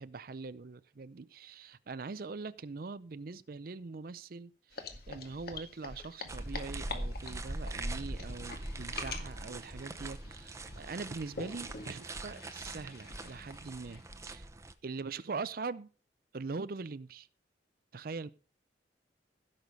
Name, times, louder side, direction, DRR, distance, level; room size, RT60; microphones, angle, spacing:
voice 1, 0.0-14.5 14.8-15.9 16.3-17.3 17.9-18.3, right 4 dB, 55° right, 0.5 m, -42 dB
sound 1, 4.7-14.2, left 3 dB, 55° left, 1.8 m, -46 dB
sound 2, 6.3-14.7, right 1 dB, 15° right, 0.8 m, -42 dB
16.0 x 6.6 x 5.3 m
head